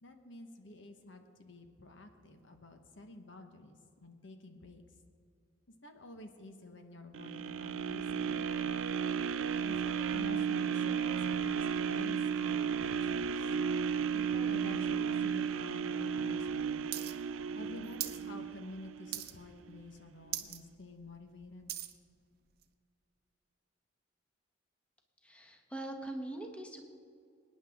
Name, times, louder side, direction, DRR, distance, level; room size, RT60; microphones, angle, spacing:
voice 1, 0.0-4.8 5.8-8.8 9.6-13.5 14.1-16.9 17.5-21.7, left 2 dB, 70° left, 5 dB, 1.2 m, -50 dB
sound 1, 7.1-19.2 19.7-19.8, right 7 dB, 85° right, 0.4 m, -34 dB
sound 2, 16.9-17.1 17.4-18.2 18.6-18.8 19.1-19.6 19.9-20.0 20.2-20.6 21.0-22.0 22.6-22.7, right 12 dB, 50° right, 0.7 m, -39 dB
voice 2, 25.2-26.8, right 1 dB, 5° left, 3 dB, 1.0 m, -42 dB
23.5 x 9.7 x 3.6 m, 2.4 s
head